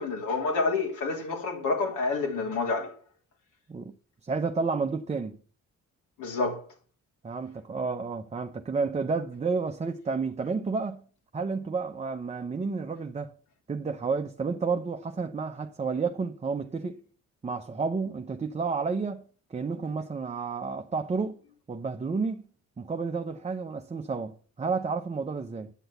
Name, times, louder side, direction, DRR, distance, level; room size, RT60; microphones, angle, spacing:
voice 1, 0.0-2.9 6.2-6.6, left 3 dB, 85° left, 3.0 m, -28 dB
voice 2, 4.2-5.4 7.2-11.0 11.3-13.3 13.7-17.0 17.4-19.2 19.5-21.4 21.7-22.4 22.8-25.7, right 4 dB, 20° right, 0.7 m, -31 dB
9.1 x 6.2 x 6.8 m
cardioid pair, 90°, 30 cm